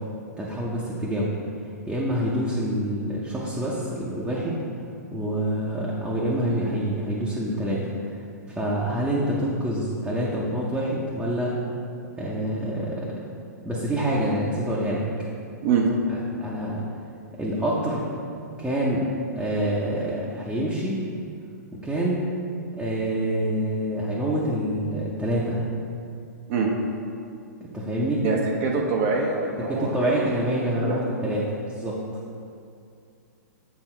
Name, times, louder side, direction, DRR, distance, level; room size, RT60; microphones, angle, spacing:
voice 1, 0.4-1.4 1.9-4.6 5.1-7.9 8.6-11.6 12.2-13.1 13.6-15.0 16.1-16.8 17.4-18.1 18.6-19.1 19.3-21.0 21.7-22.2 22.7-25.6 27.6-28.2 29.7-32.0, right 1 dB, 5° right, -7 dB, 0.8 m, -26 dB
voice 2, 28.2-30.2 30.8-31.0, right 5 dB, 45° right, 0 dB, 0.8 m, -24 dB
8.0 x 3.5 x 4.4 m, 2.5 s
hypercardioid pair, 115°, 9 cm